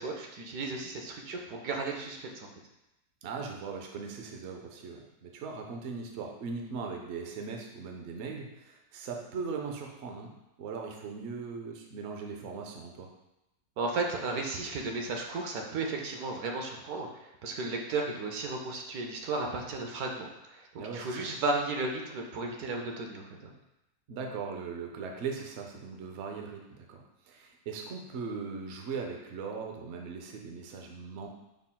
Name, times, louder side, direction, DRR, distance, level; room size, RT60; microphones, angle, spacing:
voice 1, 0.0-2.5 13.8-23.5, right 3 dB, 80° right, 2 dB, 1.1 m, -34 dB
voice 2, 3.2-10.3 10.6-13.1 20.7-21.2 24.1-31.3, right 5 dB, 60° right, 2 dB, 0.7 m, -39 dB
5.5 x 3.6 x 2.2 m, 0.93 s
omnidirectional pair, 1.6 m